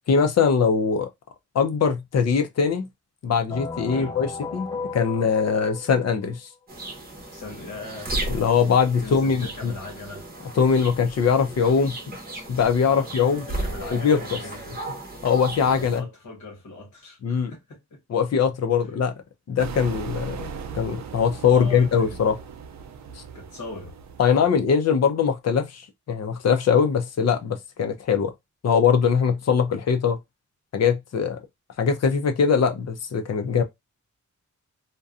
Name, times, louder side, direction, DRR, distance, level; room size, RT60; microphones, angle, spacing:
voice 1, 0.1-1.1 1.5-2.9 3.2-4.7 4.9-6.5 8.3-9.7 10.5-12.2 12.5-13.4 13.9-14.4 15.2-16.0 17.2-17.5 18.1-19.1 19.5-22.4 23.2-23.3 24.2-28.3 28.6-30.2 30.7-31.4 31.8-33.6, left 6 dB, 60° left, 0.5 m, -22 dB
sound 1, 3.5-6.4, left 4 dB, 15° left, 0.6 m, -35 dB
sound 2, 6.7-16.0, right 2 dB, 30° right, 0.7 m, -35 dB
voice 2, 7.3-8.2 9.0-10.3 12.8-14.8 15.6-18.0 21.5-22.2 23.3-24.0, left 3 dB, 85° left, 1.1 m, -40 dB
sound 3, 19.6-24.6, right 6 dB, 65° right, 0.4 m, -38 dB
2.6 x 2.2 x 2.4 m
wide cardioid pair, 175°, 30 cm